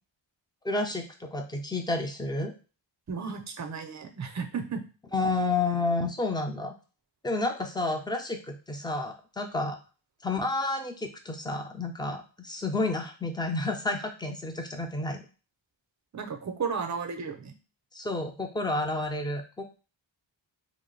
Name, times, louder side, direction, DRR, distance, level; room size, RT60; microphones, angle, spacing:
voice 1, 0.6-2.5 5.1-6.7 7.2-9.8 10.2-15.2 17.9-19.7, left 2 dB, 10° left, 5 dB, 0.5 m, -30 dB
voice 2, 3.1-4.8 16.1-17.5, right 5 dB, 40° right, 5 dB, 0.6 m, -34 dB
2.5 x 2.0 x 3.8 m, 0.34 s
cardioid pair, 70°, 47 cm